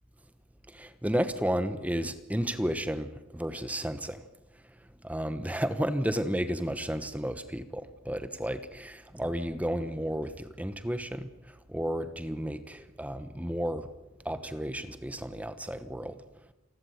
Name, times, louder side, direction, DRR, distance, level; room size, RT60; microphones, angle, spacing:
voice 1, 0.7-4.2 5.0-13.9 14.2-16.2, equal, 5° right, 11 dB, 1.1 m, -32 dB
28.0 x 12.0 x 9.5 m, 1.0 s
head